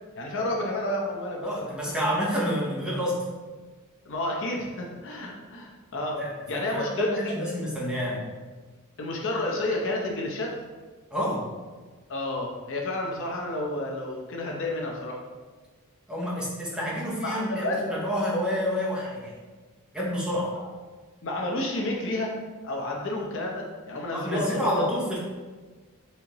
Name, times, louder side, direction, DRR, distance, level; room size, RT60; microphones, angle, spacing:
voice 1, 0.2-1.5 4.0-6.2 6.5-7.6 9.0-10.5 12.1-15.2 17.2-18.2 21.2-22.3 22.6-25.0, left 1 dB, 60° left, 0 dB, 0.7 m, -30 dB
voice 2, 1.4-3.2 6.1-8.2 11.1-11.5 16.1-19.4 19.9-20.6 24.1-25.2, equal, 5° right, -6 dB, 0.8 m, -29 dB
4.3 x 3.6 x 3.0 m, 1.4 s
head